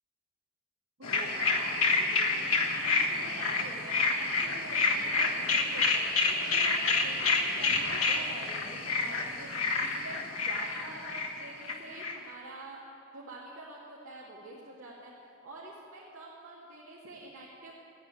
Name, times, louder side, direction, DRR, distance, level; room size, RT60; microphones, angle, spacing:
sound 1, 1.0-12.1, left 3 dB, 80° left, 1.4 m, -28 dB
voice 1, 1.0-12.8 13.1-17.7, right 2 dB, 75° right, -7 dB, 2.4 m, -47 dB
14.5 x 9.9 x 8.5 m, 2.5 s
head